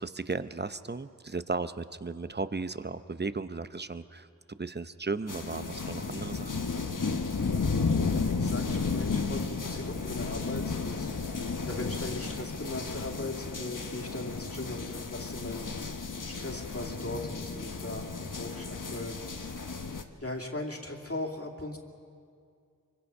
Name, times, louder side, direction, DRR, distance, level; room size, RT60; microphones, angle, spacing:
voice 1, 0.0-6.7, right 3 dB, 30° right, 12 dB, 0.8 m, -35 dB
sound 1, 5.3-20.0, left 4 dB, 75° left, 1.1 m, -33 dB
sound 2, 6.4-14.3, right 2 dB, 65° right, 3.7 m, -50 dB
voice 2, 8.1-11.1 11.6-15.7 16.2-19.2 20.2-21.8, left 2 dB, 45° left, 1 dB, 2.6 m, -39 dB
25.0 x 24.0 x 5.5 m, 2.3 s
wide cardioid pair, 45°, 32 cm